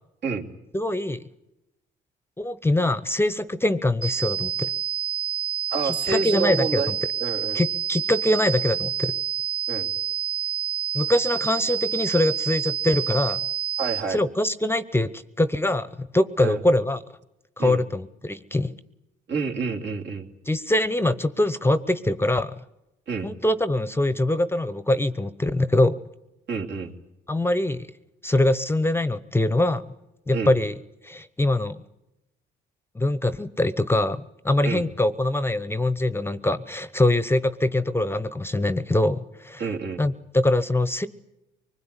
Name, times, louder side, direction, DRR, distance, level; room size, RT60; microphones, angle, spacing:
voice 1, 0.7-1.2 2.4-4.7 5.8-7.0 7.5-9.1 10.9-13.4 14.1-17.0 17.6-18.7 20.5-22.6 23.2-26.0 27.3-27.9 28.2-29.8 30.3-30.8 31.0-31.8 32.9-39.7 40.0-41.1, left 1 dB, 10° left, 15 dB, 0.8 m, -23 dB
sound 1, 4.0-14.0, right 9 dB, 5° right, 1.2 m, -28 dB
voice 2, 5.7-6.9 7.2-7.6 9.7-9.9 13.8-14.2 16.4-16.6 17.6-17.8 19.3-20.3 23.1-23.3 26.5-26.9 30.3-30.5 34.6-34.8 39.6-40.0, right 5 dB, 60° right, 2 dB, 2.9 m, -28 dB
24.0 x 20.5 x 9.9 m, 0.92 s
cardioid pair, 90°, 20 cm